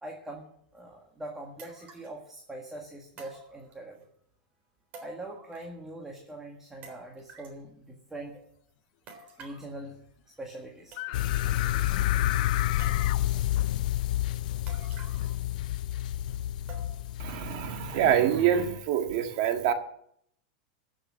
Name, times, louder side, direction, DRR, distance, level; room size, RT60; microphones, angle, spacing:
voice 1, 0.0-4.1 5.0-8.4 9.4-10.0 10.4-11.0, right 1 dB, 10° right, 1 dB, 1.7 m, -42 dB
sound 1, 0.8-0.9 1.6-2.2 3.2-4.0 4.9-5.9 6.1-6.2 6.8-7.6 9.1-9.7 10.5-10.6 10.9-11.4 11.8-11.9 12.8-13.4 14.7-15.4 15.7-15.8 16.7-17.2 17.6-17.7 18.4-18.5, right 3 dB, 35° right, 3.6 m, -50 dB
sound 2, 11.0-13.2, left 14 dB, 60° left, 0.9 m, -34 dB
sound 3, 11.1-18.2, left 14 dB, 75° left, 0.4 m, -29 dB
voice 2, 17.2-19.7, right 9 dB, 55° right, 6 dB, 1.7 m, -25 dB
14.5 x 6.8 x 7.3 m, 0.68 s
supercardioid pair, 135°, 4 cm